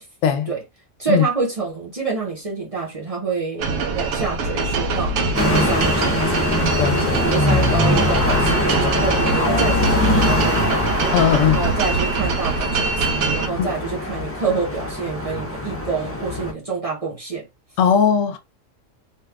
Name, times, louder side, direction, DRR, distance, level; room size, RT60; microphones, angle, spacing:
voice 1, 1.0-6.5 7.2-10.8 11.4-17.5, right 5 dB, 30° right, 0.8 m, -27 dB
sound 1, 3.6-13.5, right 4 dB, 65° right, 0.9 m, -24 dB
sound 2, 5.3-16.5, left 1 dB, 25° left, 0.3 m, -22 dB
voice 2, 6.8-7.2 9.3-9.7 11.1-11.6 13.6-13.7 17.8-18.4, left 8 dB, 75° left, 0.9 m, -19 dB
3.0 x 2.3 x 3.4 m
omnidirectional pair, 1.3 m